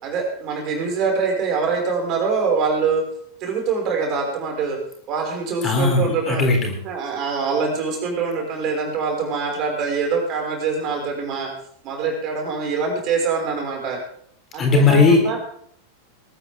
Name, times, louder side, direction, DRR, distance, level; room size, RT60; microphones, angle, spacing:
voice 1, 0.0-3.0 3.4-4.8 5.1-6.4 6.8-11.5 11.8-14.0 14.5-15.4, right 5 dB, 35° right, 1 dB, 5.6 m, -24 dB
voice 2, 5.6-6.7 14.6-15.4, left 3 dB, 25° left, 2 dB, 3.7 m, -17 dB
20.5 x 13.0 x 3.7 m, 0.62 s
figure-of-eight pair, 90°, 0 cm